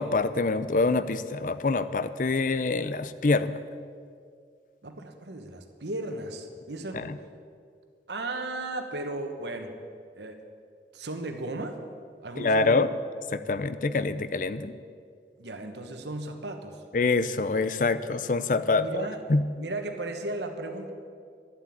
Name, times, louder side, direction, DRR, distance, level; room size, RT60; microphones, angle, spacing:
voice 1, 0.0-3.6 6.9-7.1 12.4-12.9 13.3-14.7 16.9-19.4, left 3 dB, 45° left, 13 dB, 0.5 m, -25 dB
voice 2, 4.8-7.1 8.1-9.7 10.2-10.4 10.9-11.8 12.2-12.9 15.4-16.8 18.7-19.2 19.6-20.9, right 2 dB, 75° right, 5 dB, 1.3 m, -35 dB
11.5 x 7.8 x 8.7 m, 2.2 s
head